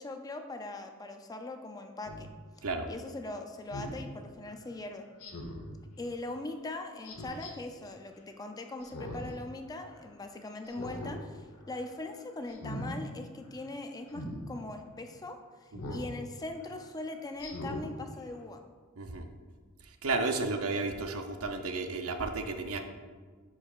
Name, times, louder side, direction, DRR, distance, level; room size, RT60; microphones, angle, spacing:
voice 1, 0.0-2.3 2.9-5.1 6.0-15.4 15.9-18.6, left 2 dB, 15° left, 5 dB, 0.4 m, -41 dB
Speech synthesizer, 2.0-2.2 3.7-4.0 5.2-5.7 7.0-7.5 8.8-9.3 9.7-9.8 10.6-11.2 11.5-11.8 12.5-12.9 14.1-14.4 15.7-16.1 16.6-16.7 17.4-17.9 18.3-18.4, left 1 dB, 85° left, 1.0 m, -40 dB
voice 2, 19.8-22.8, right 3 dB, 70° right, 6 dB, 0.6 m, -33 dB
9.7 x 4.7 x 2.4 m, 1.5 s
head